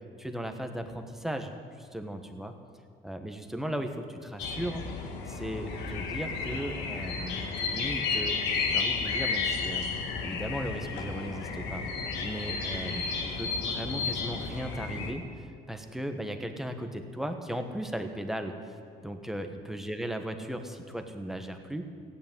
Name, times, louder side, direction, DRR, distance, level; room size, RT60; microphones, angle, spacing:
voice 1, 0.2-2.5 3.0-4.8 5.3-8.4 8.7-9.9 10.2-11.9 12.2-21.9, equal, ahead, 5 dB, 1.4 m, -37 dB
sound 1, 4.4-15.1, left 4 dB, 90° left, 2.0 m, -32 dB
15.0 x 9.9 x 9.1 m, 2.1 s
cardioid pair, 110°, 17 cm